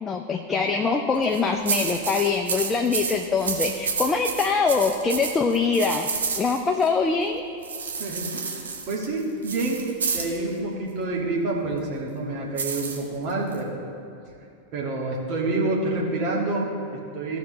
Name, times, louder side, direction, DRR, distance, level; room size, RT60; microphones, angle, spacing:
voice 1, 0.0-7.4, left 4 dB, 15° left, 2 dB, 0.5 m, -23 dB
sound 1, 1.2-6.9 7.6-10.4 12.6-13.6, right 5 dB, 70° right, 1.1 m, -30 dB
voice 2, 8.0-9.8 10.1-13.8 14.7-17.4, right 2 dB, 40° right, -3 dB, 1.7 m, -28 dB
15.5 x 5.8 x 3.1 m, 2.5 s
figure-of-eight pair, 90°, 0 cm